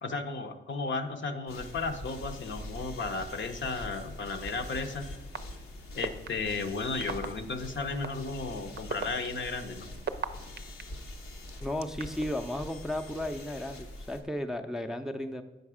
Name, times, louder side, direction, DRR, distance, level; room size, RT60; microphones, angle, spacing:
voice 1, 0.0-5.1 6.0-9.9, left 3 dB, 60° left, 6 dB, 0.7 m, -34 dB
sound 1, 1.5-14.2, left 1 dB, 90° left, 1.0 m, -44 dB
sound 2, 4.5-4.6 5.3-5.4 6.0-6.3 7.0-7.3 8.0-8.1 8.8-10.8 11.5-12.3, right 6 dB, 50° right, 0.5 m, -34 dB
voice 2, 11.6-15.4, left 1 dB, ahead, 5 dB, 0.5 m, -34 dB
8.0 x 5.2 x 4.8 m, 1.1 s
cardioid pair, 70°, 21 cm